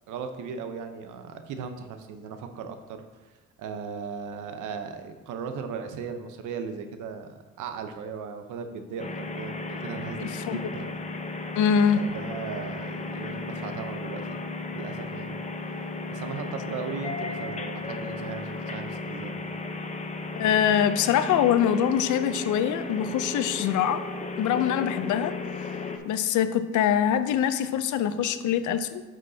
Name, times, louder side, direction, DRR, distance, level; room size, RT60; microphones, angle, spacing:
voice 1, 0.1-3.0 3.6-10.9 11.9-14.4 14.7-15.4 15.7-15.8 16.1-19.4, right 6 dB, 85° right, 7 dB, 0.9 m, -37 dB
sound 1, 9.0-26.0, left 2 dB, 25° left, 0.7 m, -35 dB
voice 2, 10.2-10.6 11.6-12.0 20.4-24.0 24.4-25.3 26.1-29.0, left 9 dB, 75° left, 11 dB, 0.6 m, -24 dB
9.1 x 6.2 x 2.8 m, 1.2 s
cardioid pair, 90°, 30 cm